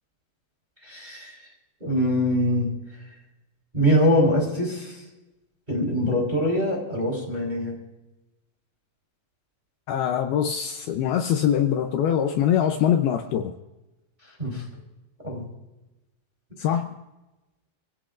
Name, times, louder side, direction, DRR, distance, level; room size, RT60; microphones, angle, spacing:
voice 1, 0.8-1.4 1.8-2.7 3.7-5.0 5.7-7.7 14.4-14.6 15.2-15.4, equal, 10° right, -1 dB, 3.1 m, -23 dB
voice 2, 9.9-13.5 16.6-17.0, left 9 dB, 80° left, 5 dB, 2.2 m, -23 dB
24.0 x 17.0 x 2.6 m, 1.0 s
omnidirectional pair, 5.5 m